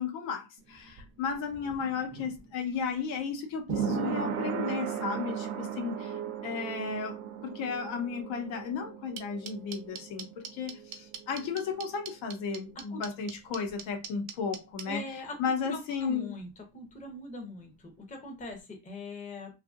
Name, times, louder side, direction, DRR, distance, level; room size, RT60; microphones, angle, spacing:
voice 1, 0.0-16.3, left 5 dB, 75° left, 1.0 m, -34 dB
sound 1, 0.6-12.1 12.4-12.5, right 7 dB, 35° right, 0.5 m, -37 dB
sound 2, 9.2-14.8, right 8 dB, 75° right, 0.7 m, -40 dB
voice 2, 14.9-15.4 15.7-16.5 16.7-19.5, left 2 dB, 15° left, 0.6 m, -41 dB
2.7 x 2.5 x 2.4 m
cardioid pair, 135°, 47 cm